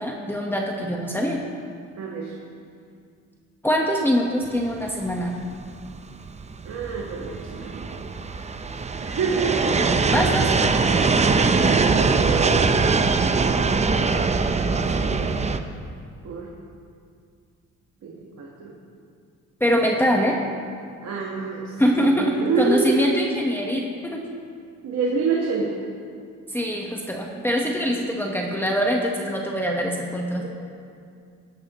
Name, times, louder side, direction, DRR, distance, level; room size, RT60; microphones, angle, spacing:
voice 1, 0.0-1.4 3.6-5.3 10.1-10.5 19.6-20.4 21.8-24.2 26.5-30.4, equal, 5° left, -1 dB, 1.2 m, -23 dB
voice 2, 2.0-2.4 6.6-8.0 9.0-10.3 11.0-13.6 14.8-15.4 16.2-16.5 18.0-18.8 21.0-23.0 24.8-25.8 27.9-28.0 30.4-30.5, right 5 dB, 60° right, -3 dB, 1.6 m, -28 dB
sound 1, 4.7-15.6, right 4 dB, 20° right, 0.6 m, -22 dB
16.5 x 10.5 x 3.1 m, 2.3 s
cardioid pair, 90°, 30 cm